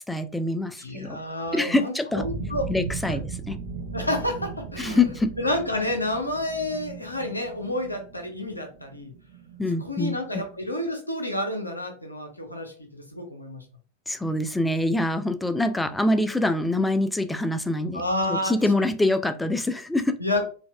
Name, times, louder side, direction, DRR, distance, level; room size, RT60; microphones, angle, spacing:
voice 1, 0.1-1.2 1.5-2.2 2.7-3.6 4.8-5.4 9.6-10.4 14.1-18.0 18.3-20.2, left 2 dB, 5° left, 0.3 m, -25 dB
voice 2, 0.8-2.7 3.1-3.2 3.9-5.0 5.4-9.1 9.8-13.6 17.9-18.5 20.2-20.4, left 1 dB, 85° left, 0.7 m, -29 dB
sound 1, 2.2-10.6, right 4 dB, 60° right, 0.7 m, -37 dB
3.9 x 2.3 x 2.2 m
figure-of-eight pair, 90°, 0 cm